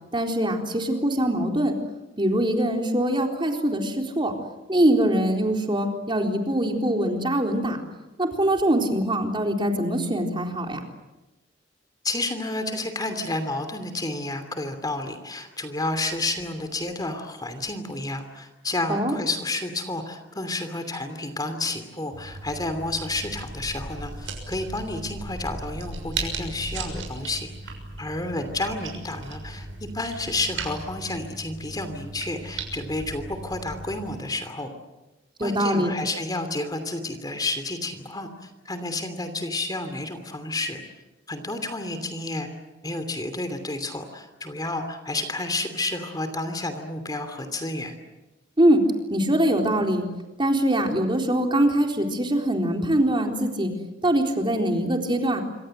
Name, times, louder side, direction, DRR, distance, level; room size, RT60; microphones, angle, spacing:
voice 1, 0.1-1.7 2.2-4.3 4.7-7.8 8.2-10.8 18.9-19.1 35.4-35.9 48.6-48.8 49.1-50.1 50.4-53.7 54.0-55.4, right 1 dB, 25° right, 3 dB, 3.9 m, -23 dB
voice 2, 12.0-29.7 29.9-34.7 35.4-40.8 41.3-42.5 42.8-48.0, left 2 dB, 20° left, 8 dB, 2.9 m, -30 dB
sound 1, 22.1-34.2, right 3 dB, 80° right, 6.7 m, -37 dB
27.0 x 25.5 x 7.9 m, 1.1 s
head